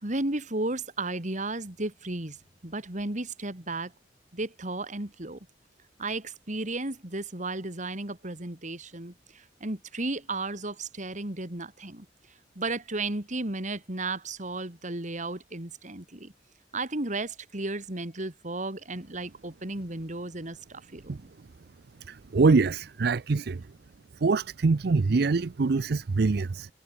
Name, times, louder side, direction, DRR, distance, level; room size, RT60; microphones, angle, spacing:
voice 1, 0.0-2.4 2.6-3.9 4.3-5.4 6.0-12.1 12.5-16.3 16.7-21.3, right 2 dB, 45° right, 2.8 m, -34 dB
voice 2, 22.3-23.6 24.2-26.7, right 4 dB, 60° right, 0.5 m, -24 dB
head